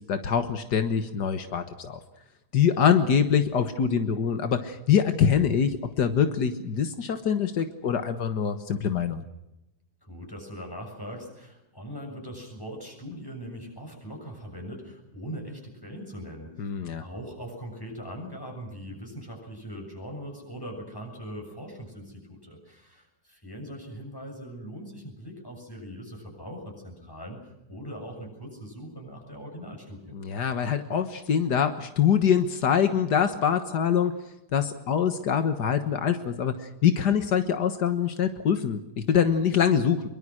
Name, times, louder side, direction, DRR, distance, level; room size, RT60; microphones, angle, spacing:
voice 1, 0.1-2.0 2.5-9.2 16.6-17.0 30.1-34.1 34.5-40.0, left 7 dB, 85° left, 9 dB, 2.0 m, -24 dB
voice 2, 10.1-16.5 17.0-30.1, equal, 15° left, 2 dB, 7.1 m, -40 dB
24.0 x 23.0 x 6.3 m, 0.90 s
omnidirectional pair, 1.7 m